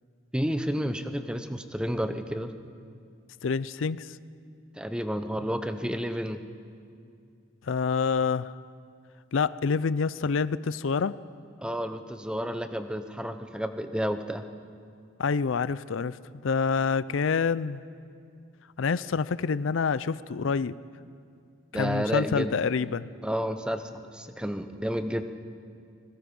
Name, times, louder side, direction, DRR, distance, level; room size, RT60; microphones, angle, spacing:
voice 1, 0.3-2.5 4.8-6.4 11.6-14.4 21.7-22.5 23.2-25.2, equal, 5° right, 8 dB, 0.8 m, -31 dB
voice 2, 3.4-4.1 7.7-8.5 9.3-11.2 15.2-16.2 16.4-17.8 18.8-20.7 21.7-23.1, left 5 dB, 75° left, 17 dB, 0.5 m, -27 dB
24.0 x 21.0 x 5.4 m, 2.4 s
head